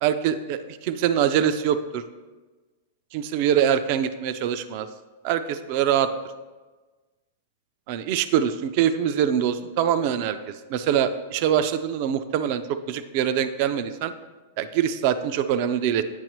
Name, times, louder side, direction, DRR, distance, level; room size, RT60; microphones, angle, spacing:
voice 1, 0.0-2.0 3.1-4.9 5.2-6.1 7.9-14.1 14.6-16.0, right 9 dB, 35° right, 12 dB, 0.3 m, -24 dB
9.0 x 6.4 x 3.0 m, 1.3 s
supercardioid pair, 175°, 0 cm